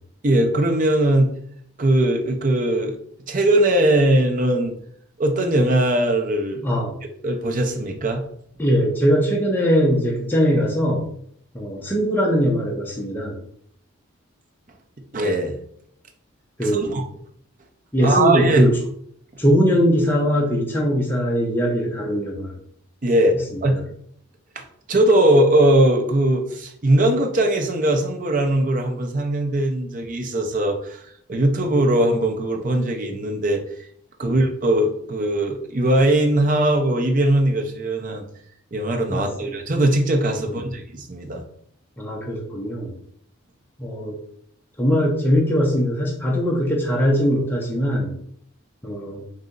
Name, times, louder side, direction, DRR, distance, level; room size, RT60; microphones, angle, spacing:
voice 1, 0.2-1.3 1.8-3.0 3.3-4.8 5.2-6.7 7.2-8.2 15.1-15.6 16.6-17.0 18.0-18.7 23.0-23.7 24.6-33.6 34.2-38.2 38.7-41.4, right 1 dB, 35° right, 3 dB, 0.6 m, -20 dB
voice 2, 8.6-11.0 11.5-13.4 16.6-17.0 17.9-18.7 19.4-22.6 23.5-23.8 34.2-34.4 39.1-39.5 40.4-40.6 42.0-43.0 43.8-44.2 44.8-48.2 48.8-49.2, equal, 10° left, -2 dB, 0.6 m, -21 dB
3.9 x 2.7 x 3.7 m, 0.65 s
head